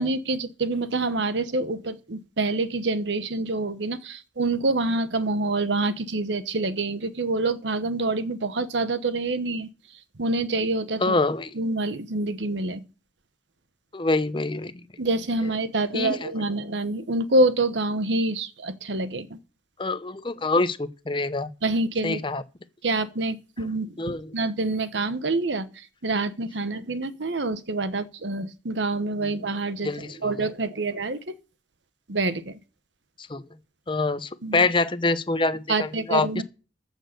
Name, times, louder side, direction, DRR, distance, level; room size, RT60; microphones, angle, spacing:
voice 1, 0.0-9.7 10.2-11.1 11.5-12.8 15.0-19.4 21.6-22.2 22.8-25.7 26.0-29.9 30.2-31.3 32.1-32.6 34.4-34.7 35.7-36.4, right 2 dB, 80° right, 1.1 m, -26 dB
voice 2, 11.0-11.5 13.9-14.8 15.9-16.3 19.8-21.5 22.0-22.4 24.0-24.3 29.2-29.3 29.8-30.5 33.3-33.4 33.9-36.4, left 3 dB, 25° left, 0.7 m, -25 dB
14.5 x 6.5 x 6.6 m
head